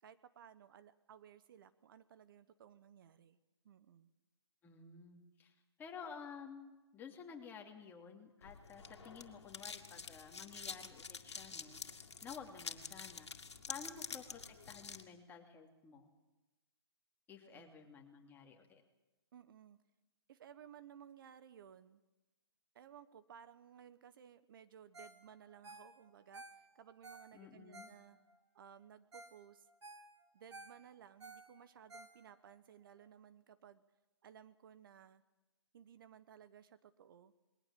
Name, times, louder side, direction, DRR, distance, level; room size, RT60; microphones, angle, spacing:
voice 1, 0.0-3.4 3.6-4.1 13.7-13.9 17.4-17.7 19.3-19.8 20.3-22.0 22.7-28.2 28.5-29.7 30.3-33.8 34.2-35.2 35.7-37.3, right 9 dB, 50° right, 14 dB, 1.0 m, -58 dB
voice 2, 4.6-13.3 13.6-16.1 17.3-18.8 27.3-27.9, left 6 dB, 15° left, 2 dB, 2.8 m, -53 dB
sound 1, 8.4-15.0, left 5 dB, 80° left, 2.2 m, -48 dB
Ringtone, 24.9-25.2 25.5-28.4 28.8-28.9 29.1-29.4 29.7-32.5 33.0-33.1, right 2 dB, 90° right, 3.8 m, -55 dB
21.0 x 18.5 x 7.7 m, 1.1 s
hypercardioid pair, 140°, 14 cm